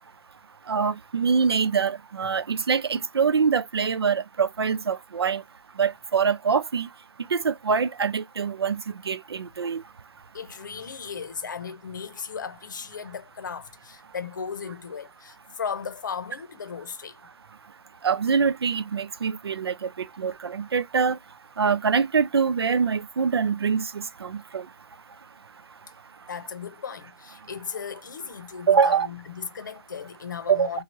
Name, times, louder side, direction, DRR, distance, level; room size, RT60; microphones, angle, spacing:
voice 1, 0.7-5.4 5.8-6.9 7.3-9.8 18.0-21.2 21.6-24.7 28.7-29.1 30.5-30.7, right 6 dB, 85° right, 0.4 m, -24 dB
voice 2, 10.3-17.2 26.3-30.8, left 6 dB, 50° left, 0.7 m, -36 dB
3.0 x 2.3 x 2.8 m
hypercardioid pair, 160°, 13 cm